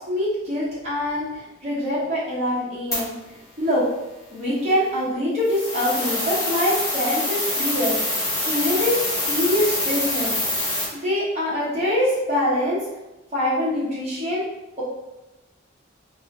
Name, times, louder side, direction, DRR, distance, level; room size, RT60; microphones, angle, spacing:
voice 1, 0.0-3.1 3.6-3.8 4.3-10.3 10.6-12.8 13.3-14.4, left 1 dB, 35° right, -9 dB, 1.3 m, -24 dB
sound 1, 2.9-3.0 5.4-10.8, left 1 dB, 15° left, 0.9 m, -25 dB
3.4 x 2.4 x 2.6 m, 0.99 s
head